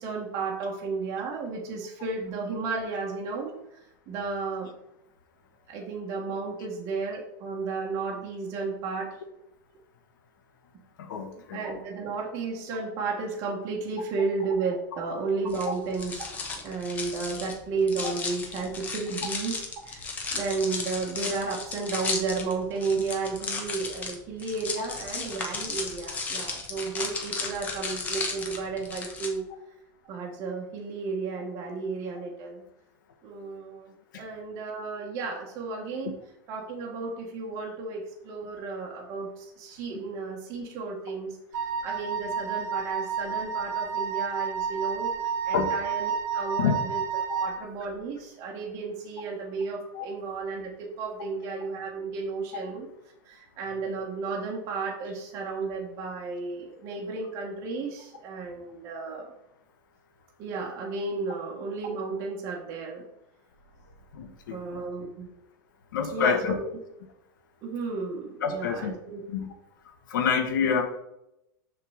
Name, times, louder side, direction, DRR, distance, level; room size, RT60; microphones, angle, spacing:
voice 1, 0.0-4.7 5.7-9.1 11.5-16.2 16.6-20.0 20.3-29.5 30.1-32.6 33.2-36.1 36.5-52.9 53.3-59.3 60.4-63.0 64.5-65.3 66.1-66.6 67.6-69.2 70.6-70.7, right 4 dB, 30° right, -2 dB, 1.3 m, -33 dB
voice 2, 11.0-11.6 18.0-18.1 45.5-45.7 46.6-46.7 47.3-47.4 49.9-50.1 64.1-64.6 65.9-66.5 68.4-68.9 69.3-69.5 70.1-70.8, left 6 dB, 75° left, 5 dB, 1.5 m, -27 dB
sound 1, 15.5-29.3, left 4 dB, 15° left, 1.0 m, -34 dB
Wind instrument woodwind instrument, 41.5-47.6, right 6 dB, 70° right, 1.5 m, -30 dB
6.6 x 3.8 x 6.4 m, 0.84 s
supercardioid pair, 170°, 11 cm